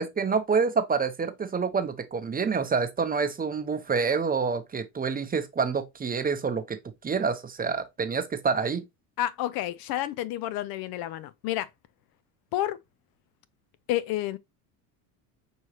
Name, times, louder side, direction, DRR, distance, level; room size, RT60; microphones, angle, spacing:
voice 1, 0.0-6.8 7.0-8.8, right 5 dB, 20° right, 0.7 m, -27 dB
voice 2, 9.2-11.7 12.5-12.8 13.9-14.4, left 13 dB, 55° left, 0.5 m, -30 dB
6.2 x 2.8 x 2.9 m
hypercardioid pair, 80°, 46 cm